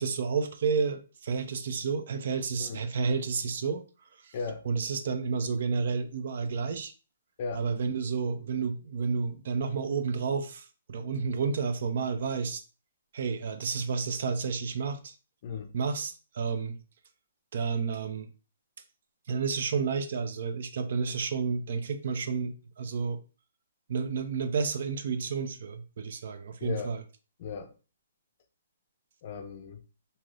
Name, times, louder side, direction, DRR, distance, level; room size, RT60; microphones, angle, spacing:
voice 1, 0.0-3.8 4.2-4.3 4.7-6.9 7.5-12.6 13.1-15.1 15.7-16.8 17.5-18.3 19.3-23.2 23.9-27.0, right 5 dB, 55° right, 0.4 m, -31 dB
voice 2, 4.3-4.6 7.4-7.7 15.4-15.7 26.6-26.9 27.4-27.7 29.2-29.8, left 5 dB, 40° left, 0.4 m, -36 dB
3.1 x 2.7 x 2.4 m
hypercardioid pair, 165°, 0 cm